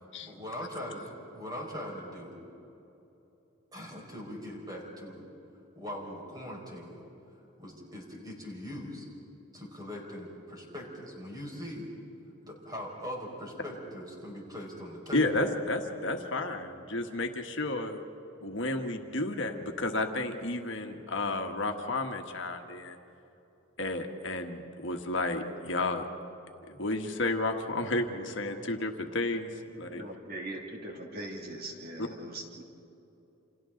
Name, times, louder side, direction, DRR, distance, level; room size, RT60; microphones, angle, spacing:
voice 1, 0.2-2.3 3.7-5.3 5.8-7.0 7.6-9.1 9.5-11.9 12.4-15.3, equal, 20° right, -2 dB, 5.2 m, -41 dB
voice 2, 15.1-18.0 18.4-23.0 23.8-26.0 26.7-29.5 29.8-30.0, left 2 dB, 60° left, 4 dB, 1.5 m, -32 dB
voice 3, 29.9-32.7, right 1 dB, 45° right, 0 dB, 2.5 m, -41 dB
29.5 x 27.5 x 3.9 m, 2.9 s
head